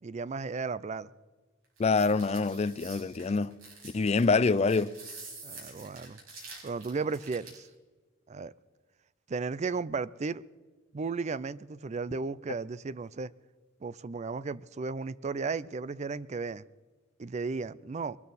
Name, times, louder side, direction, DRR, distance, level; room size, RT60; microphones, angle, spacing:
voice 1, 0.0-1.1 5.4-6.2 6.6-7.7 8.3-8.5 9.3-10.4 10.9-13.3 13.8-16.6 17.2-18.2, right 4 dB, 35° right, 0.4 m, -34 dB
voice 2, 1.8-3.5 3.9-4.9, left 4 dB, 30° left, 0.4 m, -25 dB
sound 1, 1.8-7.7, right 3 dB, 80° right, 6.0 m, -47 dB
22.0 x 13.0 x 4.2 m
head